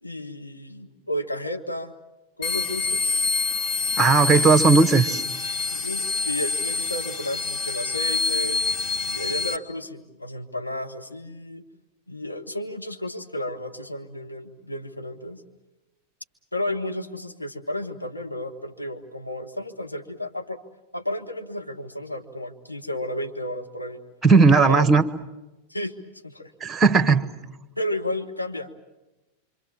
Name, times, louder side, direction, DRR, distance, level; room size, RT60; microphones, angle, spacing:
voice 1, 0.0-1.9 2.4-3.1 4.3-4.5 5.7-8.6 9.0-11.6 12.1-15.4 16.5-20.6 20.9-24.0 24.7-24.9 25.7-25.9 26.2-26.5 27.8-28.7, left 1 dB, 85° left, 3 dB, 1.7 m, -32 dB
sound 1, 2.4-9.6, left 4 dB, 30° left, 1.3 m, -26 dB
voice 2, 4.0-5.2 24.2-25.0 26.6-27.2, right 4 dB, 10° right, 11 dB, 1.4 m, -16 dB
26.5 x 26.5 x 7.2 m, 1.0 s
figure-of-eight pair, 90°, 0 cm